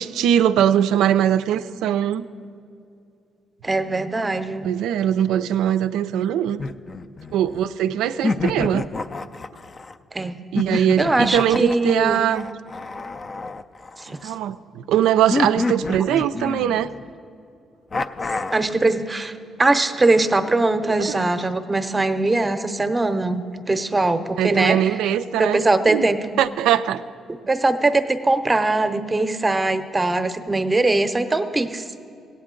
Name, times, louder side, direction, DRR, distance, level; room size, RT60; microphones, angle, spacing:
voice 1, 0.0-2.3 4.6-6.6 7.3-8.9 10.5-12.5 14.2-16.9 21.1-21.2 24.4-26.1 26.4-27.0, right 10 dB, 90° right, 12 dB, 0.3 m, -21 dB
voice 2, 3.6-4.7 10.1-10.3 10.7-12.2 14.0-14.3 18.5-19.3 19.6-25.0 25.4-26.3 27.5-31.8, right 2 dB, 20° right, 9 dB, 0.7 m, -21 dB
sound 1, 6.6-7.7 8.2-9.9 10.6-14.3 15.3-17.1 17.9-18.7, left 3 dB, 35° left, 0.4 m, -28 dB
17.0 x 8.7 x 3.8 m, 2.6 s
cardioid pair, 90°, 0 cm